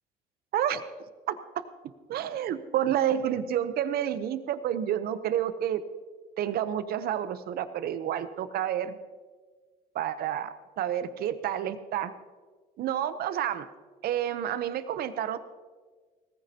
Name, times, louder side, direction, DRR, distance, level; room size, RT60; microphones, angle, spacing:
voice 1, 1.3-1.6 2.1-5.8 6.4-9.0 9.9-10.5 10.8-12.1 12.8-13.7 14.0-15.4, right 10 dB, 65° right, 12 dB, 0.8 m, -29 dB
18.0 x 15.0 x 2.9 m, 1.5 s
cardioid pair, 110°, 17 cm